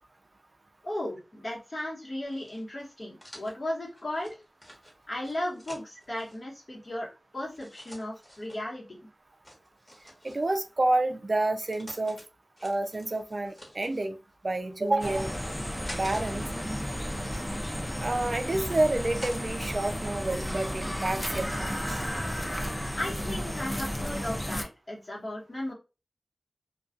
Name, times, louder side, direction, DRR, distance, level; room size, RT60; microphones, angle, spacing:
voice 1, 0.8-4.4 5.1-9.1 22.9-25.7, left 1 dB, 50° left, -2 dB, 1.1 m, -36 dB
sound 1, 2.3-6.4 7.5-8.6 9.4-10.7 11.4-12.2 12.6-14.1 14.7-16.2 16.5-18.1 18.6-19.4 19.9-21.6, equal, 25° left, 1.1 m, -49 dB
voice 2, 10.2-12.2 12.6-14.2 14.4-15.3 15.9-16.4 18.0-22.0, right 2 dB, 50° right, 8 dB, 0.3 m, -29 dB
sound 2, 15.0-24.6, equal, 10° left, 0.5 m, -33 dB
2.3 x 2.3 x 2.5 m, 0.29 s
wide cardioid pair, 50°, 0 cm